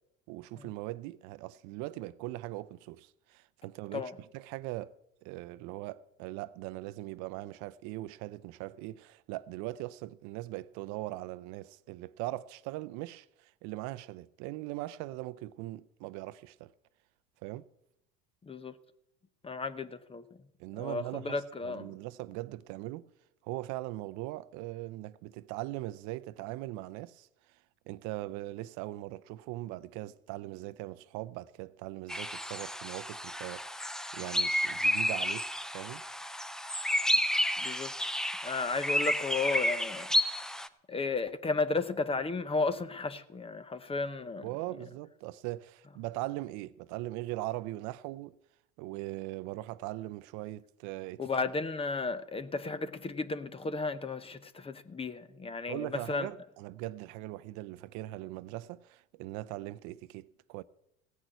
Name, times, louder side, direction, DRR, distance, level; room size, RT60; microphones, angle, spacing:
voice 1, 0.3-4.9 5.2-16.7 17.4-17.7 20.6-23.0 23.4-27.3 27.9-36.0 44.4-48.3 48.8-51.2 55.7-60.6, right 17 dB, 65° right, 0.6 m, -40 dB
voice 2, 18.4-18.7 19.4-20.2 20.8-21.9 37.6-37.9 38.4-40.5 40.9-44.5 51.2-56.3, left 3 dB, 20° left, 0.8 m, -34 dB
sound 1, 32.1-40.7, left 1 dB, ahead, 0.5 m, -31 dB
16.0 x 6.3 x 9.1 m
supercardioid pair, 105°, 32 cm